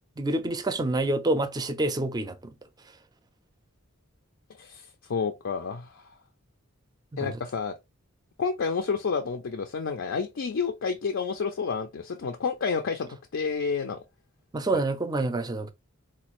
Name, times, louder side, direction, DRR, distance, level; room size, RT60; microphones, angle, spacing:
voice 1, 0.2-2.4 7.1-7.3 14.5-15.7, right 2 dB, 20° right, 0.4 m, -27 dB
voice 2, 5.1-6.0 7.2-7.7 8.4-14.0, left 5 dB, 65° left, 0.5 m, -30 dB
4.1 x 2.3 x 2.9 m
head